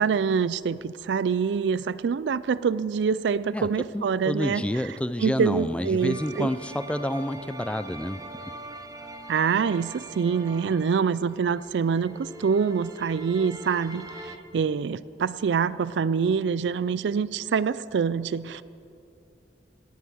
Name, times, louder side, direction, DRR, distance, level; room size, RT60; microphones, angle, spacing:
voice 1, 0.0-4.7 5.2-6.5 9.3-18.6, right 6 dB, 90° right, 18 dB, 0.4 m, -25 dB
voice 2, 3.9-8.2, left 1 dB, 5° left, 12 dB, 0.4 m, -29 dB
sound 1, 6.0-14.4, right 2 dB, 20° right, 0.7 m, -43 dB
17.5 x 8.0 x 6.2 m, 2.6 s
head